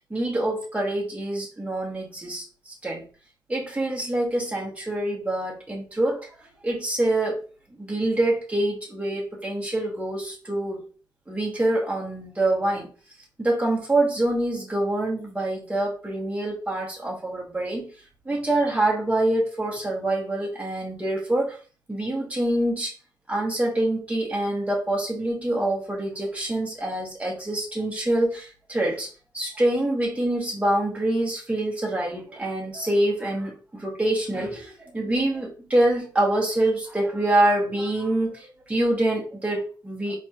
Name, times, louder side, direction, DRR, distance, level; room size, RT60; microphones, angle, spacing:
voice 1, 0.1-3.0 3.5-6.3 6.6-7.4 7.8-10.9 11.3-12.9 13.4-17.9 18.2-21.6 21.9-22.9 23.3-29.1 29.3-40.2, right 1 dB, 15° right, -3 dB, 1.7 m, -25 dB
4.3 x 3.5 x 2.9 m, 0.38 s
wide cardioid pair, 90°, 8 cm